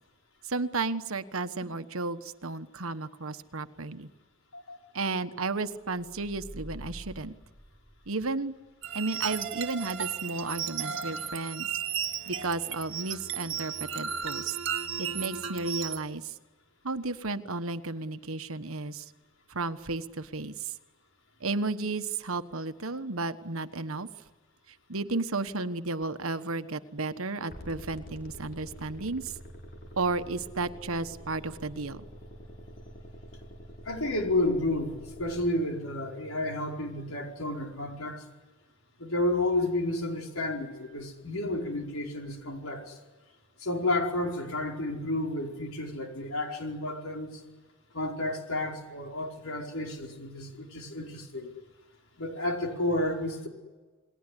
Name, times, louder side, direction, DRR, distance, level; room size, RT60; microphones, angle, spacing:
voice 1, 0.4-4.1 4.9-7.3 8.1-8.5 8.9-11.7 12.3-14.6 15.0-16.3 16.8-19.1 19.5-20.7 21.4-24.1 24.9-29.3 30.0-32.0, right 3 dB, 75° right, 11 dB, 1.3 m, -33 dB
sound 1, 5.8-8.5, right 1 dB, 5° left, 4.9 m, -46 dB
sound 2, 8.8-16.0, right 8 dB, 55° right, 2.1 m, -34 dB
sound 3, 27.5-35.5, equal, 40° left, 5.0 m, -46 dB
voice 2, 33.8-38.2 39.0-43.0 43.6-47.4 47.9-51.5 52.2-53.5, left 1 dB, 75° left, 2 dB, 5.0 m, -31 dB
29.0 x 20.5 x 9.9 m, 1.3 s
head